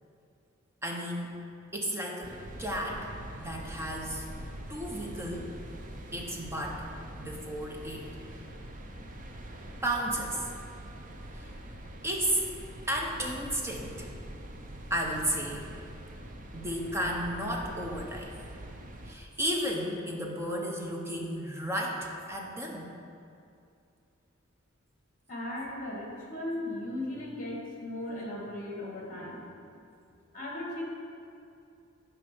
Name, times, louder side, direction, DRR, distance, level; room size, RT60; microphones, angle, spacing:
voice 1, 0.8-1.3 1.7-3.1 3.4-4.2 4.7-5.5 6.1-6.9 7.2-8.1 9.8-10.5 11.3-11.5 12.0-12.4 12.9-14.1 14.9-15.7 16.5-18.4 19.1-22.9, right 1 dB, 15° right, -1 dB, 1.0 m, -33 dB
sound 1, 2.2-19.2, right 1 dB, 40° right, 0.7 m, -44 dB
voice 2, 25.3-29.4 30.3-30.8, left 1 dB, 40° left, -2 dB, 2.0 m, -37 dB
9.8 x 5.3 x 6.1 m, 2.5 s
head